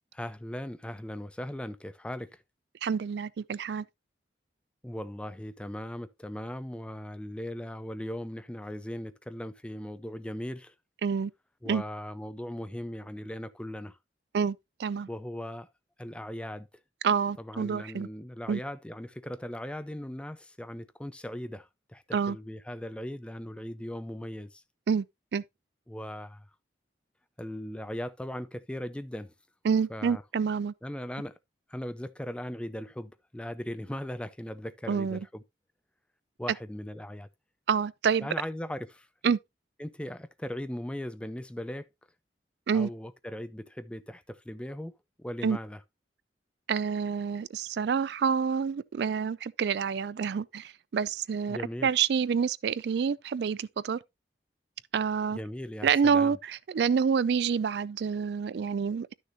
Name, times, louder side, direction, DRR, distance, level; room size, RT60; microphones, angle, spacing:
voice 1, 0.0-2.4 4.8-10.7 11.6-14.0 15.1-15.7 16.0-16.7 17.4-24.6 25.9-26.4 27.4-29.3 29.9-30.2 30.8-31.3 31.7-35.4 36.4-37.3 38.2-39.1 39.8-41.9 42.7-44.9 45.2-45.8 51.5-51.9 55.3-56.4, left 1 dB, 5° left, 0.4 m, -38 dB
voice 2, 2.8-3.8 11.0-11.3 11.7-11.8 14.3-15.1 17.0-18.1 18.5-18.6 22.1-22.4 24.9-25.1 25.3-25.4 29.6-30.7 34.9-35.2 37.7-38.3 39.2-39.4 42.7-42.9 45.4-45.6 46.7-54.0 54.9-55.4 55.8-59.1, right 6 dB, 65° right, 0.4 m, -28 dB
11.5 x 6.4 x 2.6 m
head